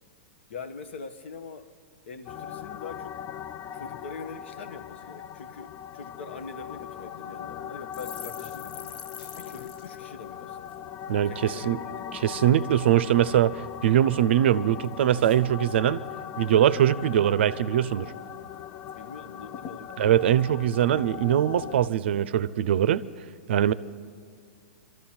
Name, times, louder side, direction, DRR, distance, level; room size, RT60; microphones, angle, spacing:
voice 1, 0.5-1.7 2.1-3.2 3.7-9.0 9.3-10.8 11.3-12.3 18.9-20.0, left 4 dB, 70° left, 9 dB, 1.0 m, -43 dB
sound 1, 2.3-21.9, left 10 dB, 30° left, 0.3 m, -40 dB
sound 2, 7.9-11.5 11.8-12.0 12.3-12.9 13.4-14.2 14.5-16.2 16.5-16.7 17.0-17.5 17.9-18.0 18.3-19.0 19.2-19.3 19.5-21.4 21.9-22.2, left 7 dB, 50° left, 0.8 m, -47 dB
voice 2, 11.1-11.8 12.1-16.0 16.4-18.1 20.0-23.0 23.5-23.7, right 11 dB, 65° right, 16 dB, 0.5 m, -22 dB
23.5 x 13.5 x 4.4 m, 2.2 s
hypercardioid pair, 115°, 7 cm